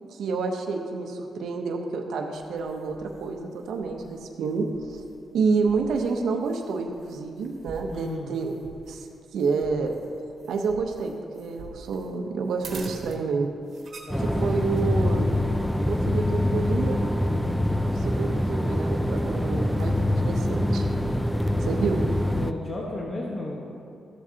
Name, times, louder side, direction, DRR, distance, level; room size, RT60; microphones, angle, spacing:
voice 1, 0.1-5.0 5.3-8.6 8.9-9.1 9.3-9.9 10.5-13.5 14.2-15.3 15.9-17.0 17.8-20.9 21.6-22.0, right 4 dB, 80° right, 3 dB, 0.7 m, -29 dB
sound 1, 2.3-20.8, right 3 dB, 60° right, 1.3 m, -48 dB
voice 2, 7.9-8.6 14.0-14.5 22.4-23.6, left 2 dB, 35° left, -2 dB, 1.1 m, -34 dB
sound 2, 14.1-22.5, left 1 dB, ahead, 0.4 m, -24 dB
13.0 x 7.4 x 2.8 m, 2.4 s
cardioid pair, 100°, 0 cm